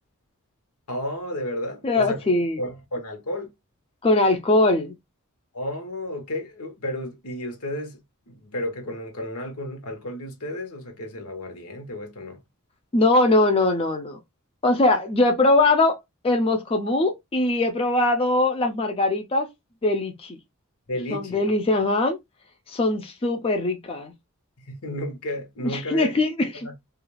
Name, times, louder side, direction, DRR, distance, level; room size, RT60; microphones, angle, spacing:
voice 1, 0.9-2.3 2.6-3.5 5.5-8.0 8.3-12.4 20.9-21.5 24.6-26.1 26.6-26.7, left 1 dB, 80° left, 0.9 m, -32 dB
voice 2, 1.8-2.6 4.0-4.9 12.9-14.2 14.6-16.0 16.2-19.5 19.8-20.4 21.1-22.2 22.7-24.1 25.6-26.7, left 2 dB, 25° left, 0.3 m, -21 dB
2.4 x 2.3 x 3.0 m
head